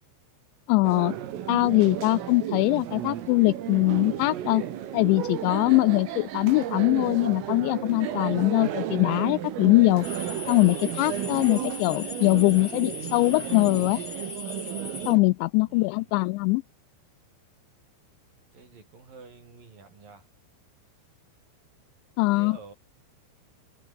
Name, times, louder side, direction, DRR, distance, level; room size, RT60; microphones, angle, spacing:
voice 1, 0.7-1.1 1.5-4.6 4.9-10.1 10.5-14.0 15.1-16.6 22.2-22.6, left 24 dB, 85° left, 2.6 m, -22 dB
sound 1, 0.8-15.2, right 11 dB, 85° right, 5.2 m, -33 dB
sound 2, 10.0-15.1, left 4 dB, 25° left, 4.1 m, -39 dB
voice 2, 18.5-20.3 22.3-22.7, right 4 dB, 45° right, 8.4 m, -48 dB
omnidirectional pair, 5.7 m